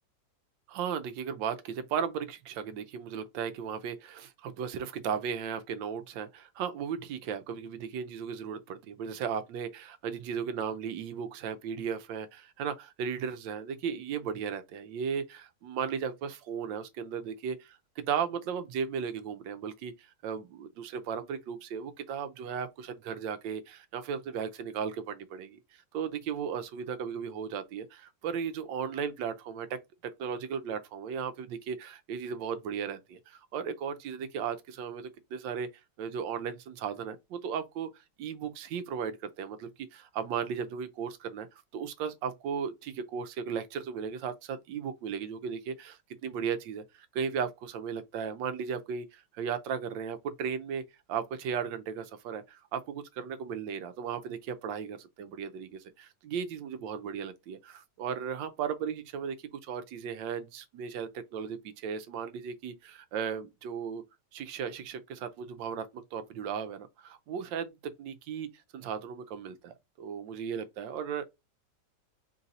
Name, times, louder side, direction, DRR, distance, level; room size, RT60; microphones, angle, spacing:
voice 1, 0.7-35.7 36.0-41.5 41.7-50.8 51.1-59.4 59.6-64.0 64.3-71.2, right 7 dB, 80° right, 1.3 m, -36 dB
3.8 x 2.6 x 4.0 m
omnidirectional pair, 2.0 m